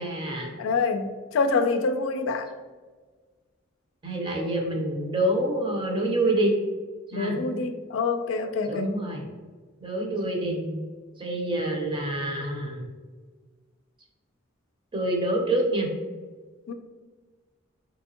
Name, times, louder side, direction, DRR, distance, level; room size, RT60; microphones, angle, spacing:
voice 1, 0.0-0.5 4.0-6.5 7.1-7.4 8.6-9.2 9.8-10.8 11.2-12.9 14.9-15.9, right 1 dB, 25° right, 0 dB, 0.6 m, -27 dB
voice 2, 0.6-2.5 7.1-9.0 16.7-16.8, left 4 dB, 70° left, 8 dB, 0.3 m, -26 dB
3.4 x 2.8 x 2.8 m, 1.4 s
head